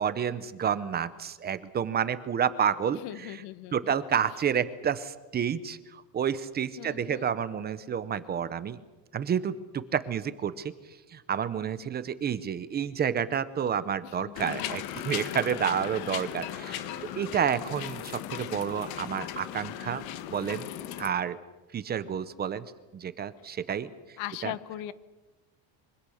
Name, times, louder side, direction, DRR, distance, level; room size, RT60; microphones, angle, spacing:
voice 1, 0.0-3.3 3.7-8.8 9.1-10.7 11.1-16.9 17.2-20.0 20.3-20.7 21.0-21.4 21.7-22.6 22.9-23.9 24.4-24.5, right 8 dB, 20° right, 14 dB, 0.8 m, -30 dB
voice 2, 2.9-3.9 6.8-7.3 14.0-14.7 24.2-24.9, left 14 dB, 85° left, 15 dB, 1.4 m, -40 dB
sound 1, 14.3-21.1, left 12 dB, 55° left, 1.5 m, -37 dB
25.5 x 24.5 x 6.5 m, 1.1 s
cardioid pair, 175°, 43 cm